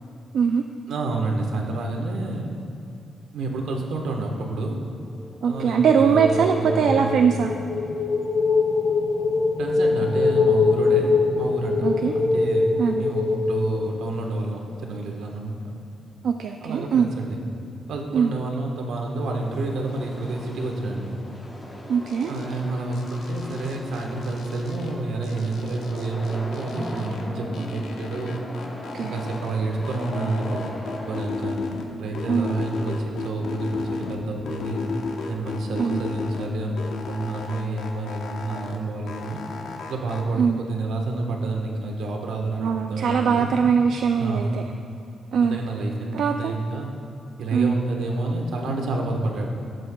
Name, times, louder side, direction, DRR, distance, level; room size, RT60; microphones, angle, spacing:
voice 1, 0.3-0.6 5.4-7.5 11.8-12.1 12.8-13.0 16.2-17.1 18.1-18.3 21.9-22.3 28.9-29.1 32.3-32.6 35.8-36.0 40.4-40.6 42.6-44.6 45.3-45.6 46.1-46.6 47.5-47.7, right 6 dB, 65° right, 4 dB, 0.4 m, -21 dB
voice 2, 0.9-2.5 3.3-4.8 5.4-7.3 9.6-11.9 12.1-15.6 16.6-17.4 17.9-21.2 22.3-28.4 29.0-31.6 32.0-34.8 35.3-36.8 37.0-39.4 39.9-43.5 44.2-44.4 45.4-46.9 47.4-49.5, right 2 dB, 85° right, 1 dB, 1.2 m, -29 dB
sound 1, 5.5-14.4, left 4 dB, 40° left, 0.5 m, -23 dB
sound 2, 18.6-31.2, left 1 dB, 15° left, 1.0 m, -38 dB
sound 3, 22.1-22.6 22.9-24.9 25.2-27.2 27.5-29.5 29.8-31.9 32.1-34.2 34.5-36.5 36.8-38.8 39.1-40.2, left 4 dB, 85° left, 0.9 m, -34 dB
16.0 x 7.8 x 2.3 m, 2.6 s
wide cardioid pair, 145°, 0 cm